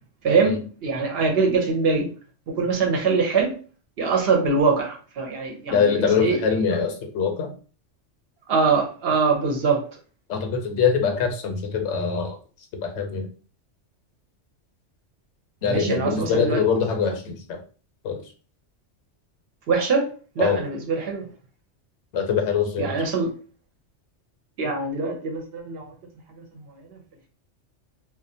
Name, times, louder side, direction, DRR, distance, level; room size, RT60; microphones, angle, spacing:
voice 1, 0.2-2.1 2.5-3.5 4.0-5.8 6.2-6.4 8.5-9.9 15.7-16.6 19.7-20.1 20.4-21.3 22.8-23.3 24.6-25.9, right 4 dB, 65° right, 2 dB, 0.7 m, -23 dB
voice 2, 5.7-7.5 10.3-12.4 12.8-13.3 15.6-17.6 18.0-18.2 20.4-20.6 22.1-23.0, left 6 dB, 75° left, 5 dB, 0.9 m, -23 dB
2.4 x 2.2 x 2.6 m, 0.38 s
omnidirectional pair, 1.2 m